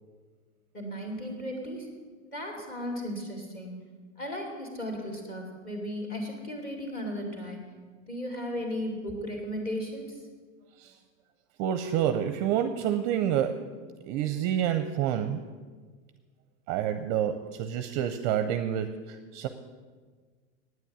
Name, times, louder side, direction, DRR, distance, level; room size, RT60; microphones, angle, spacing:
voice 1, 0.7-1.9 2.2-3.7 4.2-7.6 8.1-10.2, equal, 25° left, 1 dB, 2.8 m, -35 dB
voice 2, 11.6-13.6 14.0-15.4 16.7-19.5, right 10 dB, 40° right, 9 dB, 0.6 m, -28 dB
9.3 x 8.2 x 8.8 m, 1.5 s
supercardioid pair, 145°, 38 cm